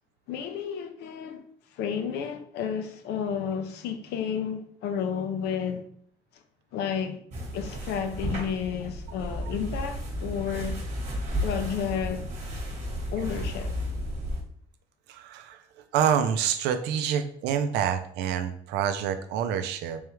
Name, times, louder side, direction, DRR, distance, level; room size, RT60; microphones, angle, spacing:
voice 1, 0.3-1.4 1.7-5.9 6.3-6.4 6.7-7.2 7.5-10.8 11.4-12.3 13.1-13.7, left 7 dB, 80° left, 0.6 m, -31 dB
sound 1, 7.3-14.4, equal, 40° right, 1.1 m, -33 dB
voice 2, 15.1-15.6 15.9-20.0, right 8 dB, 90° right, 0.5 m, -27 dB
3.5 x 3.3 x 3.1 m
cardioid pair, 110°, 17 cm